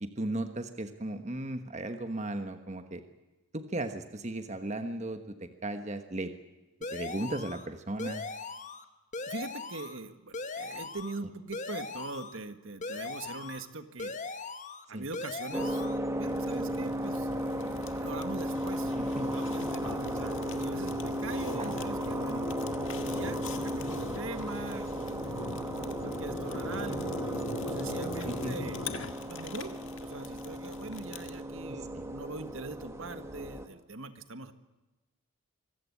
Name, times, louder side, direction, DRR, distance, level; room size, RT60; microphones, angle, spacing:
voice 1, 0.0-3.0 3.5-6.3 6.9-8.2 14.9-15.0 19.0-19.3 21.5-21.7 28.2-28.5 31.7-31.8, right 1 dB, 30° right, 8 dB, 1.3 m, -36 dB
sound 1, 6.8-7.7 8.0-8.8 9.1-10.0 10.3-11.2 11.5-12.4 12.8-13.7 14.0-14.9 15.1-16.0, left 3 dB, 35° left, 1.4 m, -39 dB
voice 2, 9.3-14.1 14.9-15.9 16.2-18.9 19.2-22.5 23.0-27.2 27.6-28.8 29.3-34.5, right 2 dB, 65° right, 9 dB, 1.6 m, -42 dB
sound 2, 15.5-33.7, equal, 15° right, 1.6 m, -35 dB
Fire, 16.3-31.4, left 2 dB, 60° left, 1.8 m, -41 dB
25.0 x 15.5 x 9.8 m, 1.1 s
head